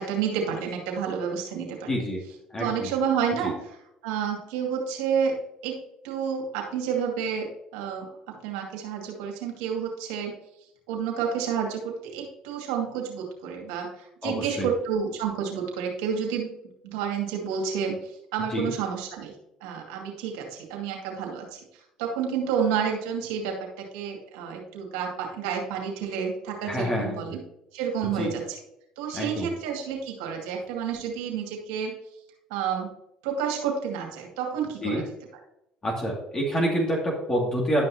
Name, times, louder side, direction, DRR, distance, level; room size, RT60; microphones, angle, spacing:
voice 1, 0.0-1.9 2.6-3.8 4.0-5.3 5.6-5.8 6.0-10.4 10.9-16.5 16.8-19.3 19.6-23.6 23.9-27.4 27.7-28.4 29.0-31.9 32.5-32.9 33.2-35.0, right 7 dB, 85° right, 0 dB, 2.3 m, -30 dB
voice 2, 1.9-2.2 2.5-2.9 3.4-3.5 14.2-14.7 18.5-18.7 26.6-27.3 28.2-28.3 29.1-29.5 34.8-35.0 35.8-37.9, equal, 30° left, -2 dB, 2.3 m, -27 dB
11.5 x 5.6 x 2.8 m, 0.80 s
supercardioid pair, 80°, 2 cm